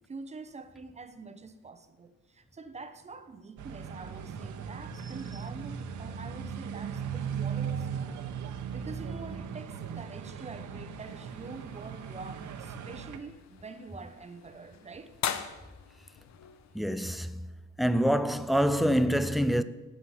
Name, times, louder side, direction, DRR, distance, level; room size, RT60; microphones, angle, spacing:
voice 1, 0.1-15.2, right 4 dB, 20° right, 0.8 m, -46 dB
sound 1, 3.6-13.2, right 7 dB, 70° right, 1.2 m, -38 dB
sound 2, 11.0-17.5, left 9 dB, 60° left, 1.0 m, -42 dB
voice 2, 16.7-17.5 17.8-19.6, equal, ahead, 0.4 m, -26 dB
18.0 x 7.6 x 5.6 m
cardioid pair, 155°, 31 cm